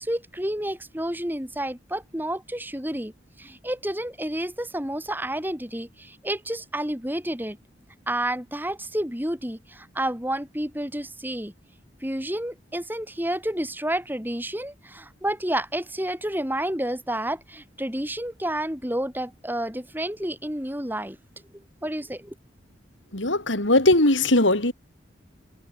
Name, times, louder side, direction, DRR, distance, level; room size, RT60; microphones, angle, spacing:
voice 1, 0.0-3.1 3.4-7.6 8.1-11.5 12.0-21.2 21.8-22.3, right 1 dB, 10° right, 4.7 m, -30 dB
voice 2, 23.1-24.7, left 2 dB, 85° left, 4.7 m, -19 dB
head